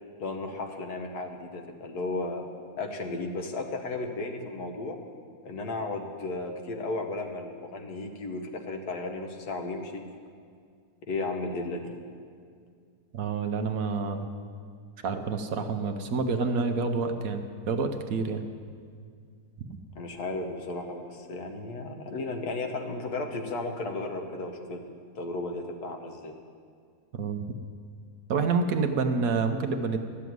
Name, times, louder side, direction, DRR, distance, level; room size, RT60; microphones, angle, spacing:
voice 1, 0.2-2.4 2.8-5.0 5.4-10.0 11.1-11.9 19.9-26.3, left 2 dB, 70° left, 4 dB, 1.7 m, -34 dB
voice 2, 13.1-14.3 15.0-18.4 27.1-27.5 28.3-30.0, right 4 dB, 65° right, 6 dB, 1.2 m, -28 dB
13.5 x 7.1 x 9.3 m, 2.2 s
omnidirectional pair, 1.7 m